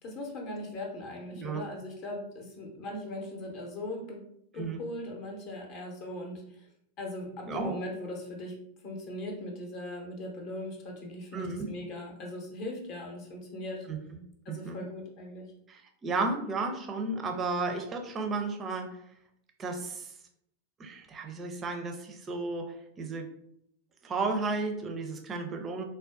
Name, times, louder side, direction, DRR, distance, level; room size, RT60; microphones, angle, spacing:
voice 1, 0.0-4.2 4.5-6.7 7.0-8.6 8.8-13.9 14.4-15.5, left 1 dB, 40° left, 1 dB, 0.7 m, -39 dB
voice 2, 7.5-7.8 11.3-11.7 13.9-14.0 14.5-14.9 15.7-19.0 19.6-20.1 20.8-23.3 24.0-25.8, right 3 dB, 25° right, 4 dB, 0.5 m, -33 dB
3.9 x 2.2 x 2.4 m, 0.72 s
figure-of-eight pair, 90°, 0 cm